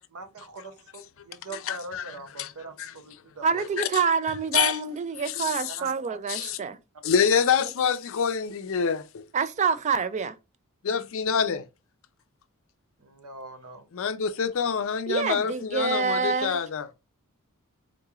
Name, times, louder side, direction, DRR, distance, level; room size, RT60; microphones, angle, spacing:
voice 1, 0.1-3.6 5.8-5.9 13.0-13.9, right 3 dB, 80° right, 0.6 m, -42 dB
voice 2, 1.7-2.5 2.8-2.9 3.8-3.9 4.5-4.8 5.2-5.8 6.3-6.6 7.0-9.3 10.8-11.6 13.9-16.9, left 7 dB, 65° left, 0.4 m, -26 dB
voice 3, 3.4-6.8 9.3-10.3 15.1-16.6, right 5 dB, 30° right, 0.3 m, -27 dB
3.8 x 2.9 x 2.3 m
head